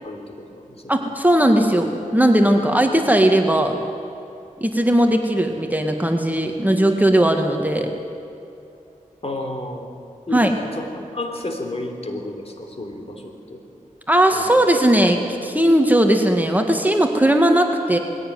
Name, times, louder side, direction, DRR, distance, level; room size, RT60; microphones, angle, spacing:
voice 1, 0.0-0.9 9.2-9.9 10.3-10.9 11.1-13.6 14.3-14.6, left 2 dB, 45° left, 4 dB, 3.3 m, -31 dB
voice 2, 0.9-3.8 4.6-7.9 10.3-10.5 14.1-18.0, right 1 dB, 10° right, 4 dB, 2.0 m, -18 dB
21.0 x 16.5 x 9.5 m, 2.8 s
wide cardioid pair, 65°, 14 cm